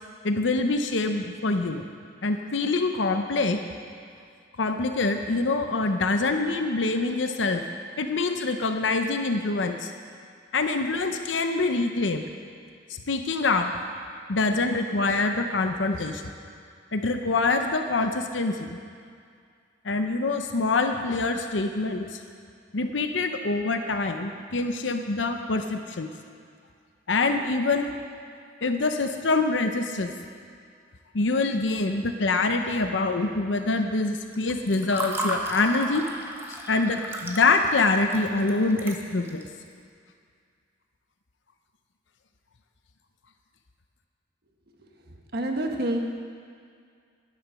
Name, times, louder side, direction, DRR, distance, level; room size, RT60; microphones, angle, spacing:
voice 1, 0.2-1.8 2.2-3.6 4.6-7.6 8.0-9.9 10.5-12.2 12.9-13.7 14.3-16.3 16.9-18.8 19.8-22.2 22.7-26.1 27.1-28.0 28.6-30.1 31.1-36.1 36.5-39.5, left 3 dB, 80° left, 6 dB, 0.8 m, -25 dB
Water / Fill (with liquid), 34.3-39.5, right 1 dB, 15° right, 1.2 m, -34 dB
voice 2, 45.3-46.0, right 1 dB, 60° right, 2 dB, 1.4 m, -27 dB
11.5 x 11.0 x 6.3 m, 2.2 s
head